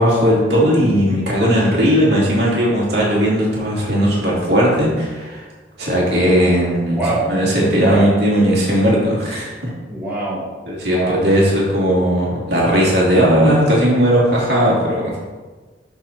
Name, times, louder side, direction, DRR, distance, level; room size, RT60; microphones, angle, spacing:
voice 1, 0.0-5.5 5.8-7.0 7.3-9.7 10.7-15.2, equal, 65° right, -5 dB, 2.8 m, -17 dB
voice 2, 7.0-7.4 7.7-8.1 9.9-10.5 10.9-11.3, right 2 dB, 10° right, -8 dB, 2.4 m, -23 dB
12.0 x 4.5 x 4.4 m, 1.3 s
head